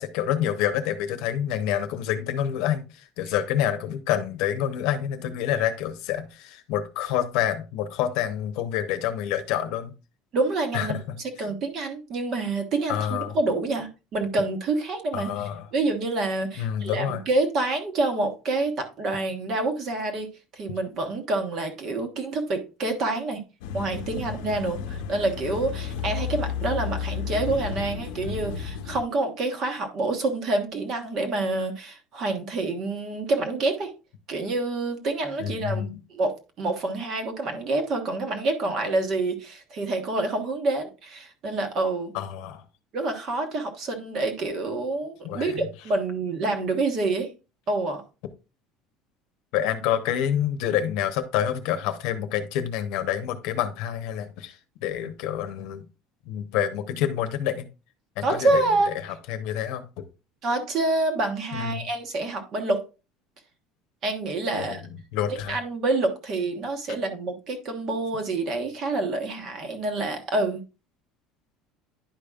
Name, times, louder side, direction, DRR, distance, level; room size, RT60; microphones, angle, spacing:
voice 1, 0.0-2.8 3.2-9.9 10.7-11.5 12.9-13.4 15.1-15.6 16.6-17.2 35.4-36.0 42.1-42.6 45.2-45.7 49.5-54.6 54.8-55.8 56.3-57.7 58.2-58.6 58.9-60.0 61.5-61.9 64.5-64.8 65.1-65.6, left 10 dB, 60° left, 0.9 m, -27 dB
voice 2, 10.3-15.3 15.7-23.4 23.7-33.9 34.3-35.8 36.1-42.1 42.9-47.3 47.7-48.0 58.2-58.9 60.4-62.8 64.0-64.8 65.5-70.6, right 2 dB, 35° right, 1.2 m, -27 dB
sound 1, 23.6-29.0, left 7 dB, 85° left, 0.7 m, -32 dB
10.5 x 5.2 x 2.4 m
cardioid pair, 180°, 0 cm